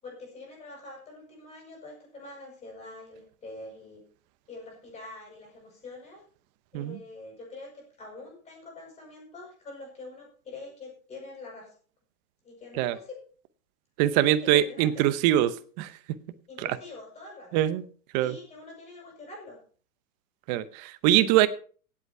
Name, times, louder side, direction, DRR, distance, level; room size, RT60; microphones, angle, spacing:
voice 1, 0.0-4.0 4.5-6.2 6.7-11.7 12.4-13.2 14.1-15.4 16.5-17.6 18.2-19.6, left 2 dB, 15° left, 0 dB, 7.0 m, -45 dB
voice 2, 14.0-15.9 17.5-17.8 18.1-18.3 20.5-21.5, right 13 dB, 30° right, 14 dB, 0.8 m, -23 dB
16.5 x 8.4 x 4.7 m, 0.42 s
hypercardioid pair, 145°, 44 cm